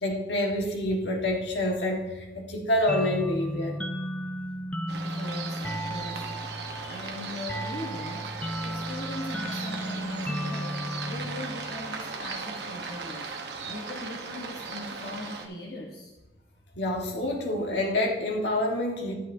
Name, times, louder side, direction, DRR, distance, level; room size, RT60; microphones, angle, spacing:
voice 1, 0.0-3.8 6.8-7.0 16.8-19.1, left 1 dB, 80° left, 1 dB, 1.5 m, -27 dB
sound 1, 2.9-12.2, equal, 5° left, 0.4 m, -35 dB
voice 2, 4.9-6.5 6.9-13.3 13.7-16.1, left 1 dB, 60° left, -2 dB, 1.1 m, -40 dB
sound 2, 4.9-15.5, right 4 dB, 75° right, 1.0 m, -37 dB
11.0 x 9.0 x 2.7 m, 1.1 s
head